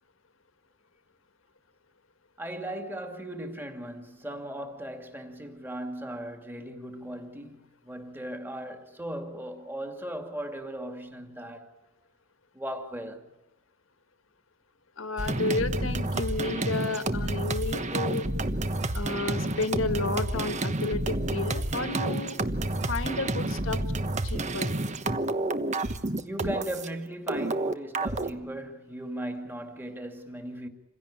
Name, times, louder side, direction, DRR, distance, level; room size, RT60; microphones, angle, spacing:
voice 1, 2.4-11.8 12.5-13.3 26.2-30.7, right 1 dB, 10° right, 2.5 m, -37 dB
voice 2, 15.0-18.3 18.9-22.4 22.9-23.8 24.2-24.7, left 3 dB, 70° left, 1.9 m, -31 dB
sound 1, 15.2-26.9 27.3-28.3, right 2 dB, 35° right, 1.2 m, -29 dB
27.5 x 16.5 x 8.8 m
head